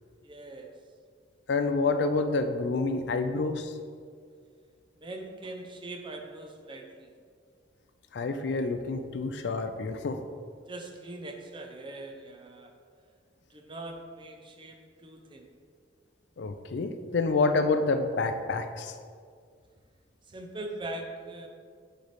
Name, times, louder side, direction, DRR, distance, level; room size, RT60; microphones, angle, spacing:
voice 1, 0.2-0.7 5.0-7.1 10.7-12.7 13.5-15.5 20.3-21.5, right 2 dB, 25° right, 3 dB, 0.5 m, -41 dB
voice 2, 1.5-3.7 8.1-10.2 16.4-18.9, left 3 dB, 65° left, 8 dB, 0.4 m, -28 dB
7.7 x 3.3 x 4.1 m, 2.1 s
head